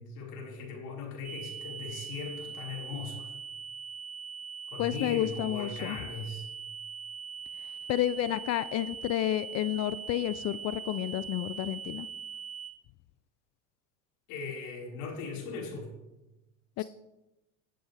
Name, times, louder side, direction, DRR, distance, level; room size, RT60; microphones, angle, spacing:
voice 1, 0.0-3.3 4.7-6.5 14.3-15.9 16.8-16.9, left 4 dB, 60° left, -2 dB, 4.9 m, -39 dB
sound 1, 1.2-12.7, right 6 dB, 15° left, 4.5 m, -42 dB
voice 2, 4.8-6.0 7.9-12.1 16.8-16.9, left 13 dB, 40° left, 16 dB, 0.5 m, -30 dB
21.0 x 7.8 x 3.4 m, 0.99 s
supercardioid pair, 100°, 38 cm